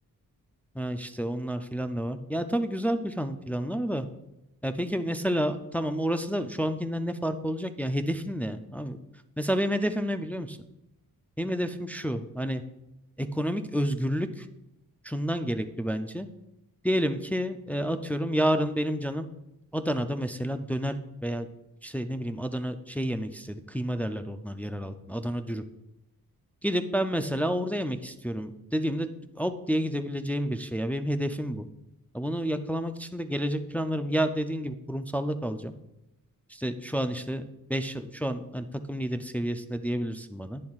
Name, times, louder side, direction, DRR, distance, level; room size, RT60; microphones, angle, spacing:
voice 1, 0.7-4.1 4.6-9.0 9.4-10.6 11.4-12.6 13.2-14.5 15.0-16.3 16.8-19.3 19.7-21.5 21.8-25.6 26.6-29.1 29.4-31.7 32.1-35.7 36.5-40.6, equal, 5° left, 7 dB, 0.3 m, -30 dB
10.5 x 9.5 x 2.4 m, 0.90 s
wide cardioid pair, 135°, 35 cm